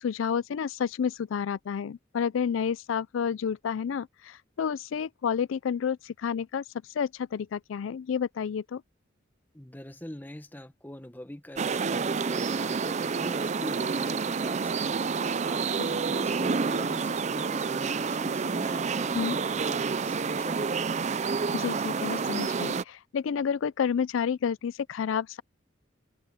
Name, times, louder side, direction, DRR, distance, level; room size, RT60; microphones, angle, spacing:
voice 1, 0.0-6.6 6.9-8.8 19.1-19.4 21.5-25.4, left 7 dB, 85° left, 0.4 m, -30 dB
voice 2, 9.5-15.0 15.5-20.8, left 1 dB, 10° left, 1.3 m, -44 dB
sound 1, 11.6-22.8, right 5 dB, 35° right, 0.5 m, -29 dB
head